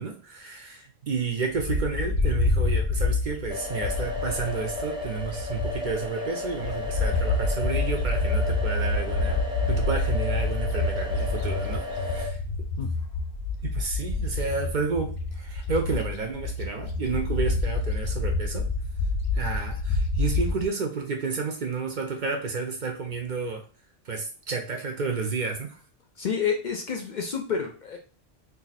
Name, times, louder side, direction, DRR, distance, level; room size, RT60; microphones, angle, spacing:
voice 1, 0.0-12.4 13.6-18.6 19.3-23.6 24.0-25.8, right 4 dB, 55° right, 3 dB, 0.7 m, -31 dB
Bird, 1.6-6.1 6.4-20.6, left 3 dB, 90° left, 0.9 m, -27 dB
sound 1, 3.5-12.3, left 2 dB, 5° right, 0.4 m, -34 dB
voice 2, 26.2-28.0, left 6 dB, 55° left, 3 dB, 0.6 m, -29 dB
2.6 x 2.4 x 4.0 m, 0.38 s
omnidirectional pair, 1.1 m